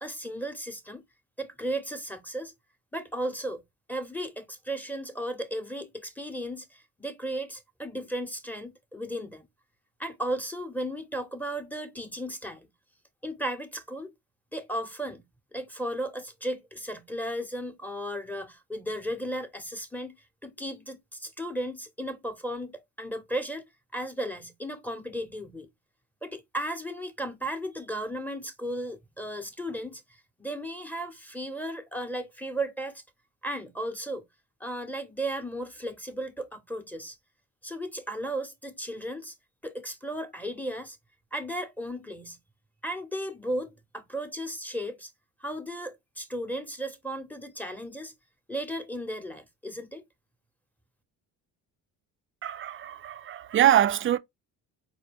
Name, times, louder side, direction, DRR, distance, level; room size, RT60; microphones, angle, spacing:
voice 1, 0.0-1.0 1.4-2.5 2.9-3.6 3.9-9.5 10.0-12.7 13.2-14.1 14.5-15.2 15.5-20.2 20.4-25.7 26.2-33.0 33.4-34.3 34.6-37.2 37.6-39.3 39.6-41.0 41.3-42.4 42.8-45.1 45.4-48.1 48.5-50.0, right 1 dB, 5° left, 0.9 m, -35 dB
voice 2, 52.4-54.2, right 11 dB, 30° right, 0.4 m, -24 dB
4.5 x 2.2 x 3.4 m
supercardioid pair, 75°, 42 cm